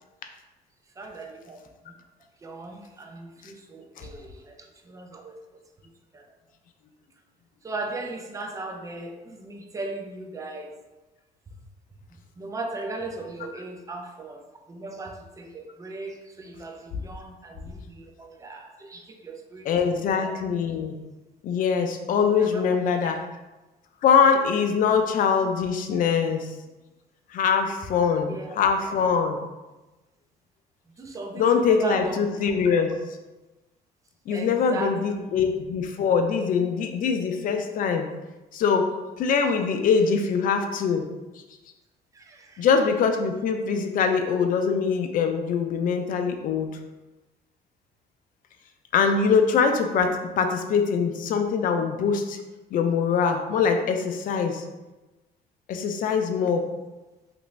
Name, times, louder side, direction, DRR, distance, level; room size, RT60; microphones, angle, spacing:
voice 1, 1.0-1.6 2.4-2.8 3.1-4.2 4.9-5.3 7.6-10.7 12.4-14.4 14.7-16.1 16.4-16.7 17.0-17.8 18.2-18.6 18.9-19.0 19.2-20.0 20.2-20.4 28.3-28.5 31.0-31.3 31.8-32.2 34.3-35.1, right 2 dB, 20° right, 3 dB, 0.4 m, -36 dB
voice 2, 19.6-21.0 21.4-23.2 24.0-26.5 27.3-29.4 31.3-32.9 34.3-38.1 38.5-38.9 39.2-41.1 42.6-46.7 48.9-52.4 52.7-54.6 55.7-56.7, left 6 dB, 55° left, 5 dB, 0.4 m, -23 dB
2.9 x 2.5 x 3.1 m, 1.1 s
cardioid pair, 110°, 17 cm